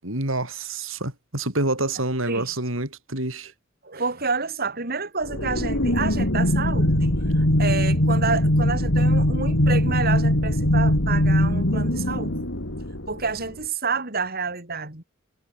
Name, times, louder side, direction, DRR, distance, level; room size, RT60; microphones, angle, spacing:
voice 1, 0.0-3.5, right 2 dB, 75° right, 6.9 m, -27 dB
voice 2, 2.2-2.6 3.8-12.5 13.1-15.0, right 4 dB, 50° right, 3.8 m, -29 dB
sound 1, 5.3-13.5, left 1 dB, 65° left, 4.2 m, -21 dB
head